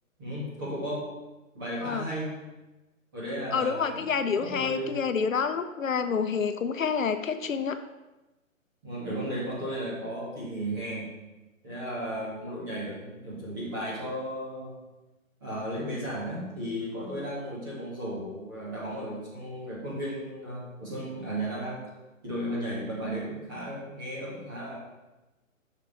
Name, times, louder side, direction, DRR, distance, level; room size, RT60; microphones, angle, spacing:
voice 1, 0.2-1.1 1.5-2.4 3.1-4.0 4.3-5.0 8.8-11.1 11.6-14.7 15.4-21.9 22.2-24.8, equal, 15° right, -8 dB, 2.0 m, -34 dB
voice 2, 3.5-7.8, left 6 dB, 70° left, 9 dB, 0.7 m, -28 dB
8.0 x 6.2 x 4.4 m, 1.1 s
hypercardioid pair, 180°, 41 cm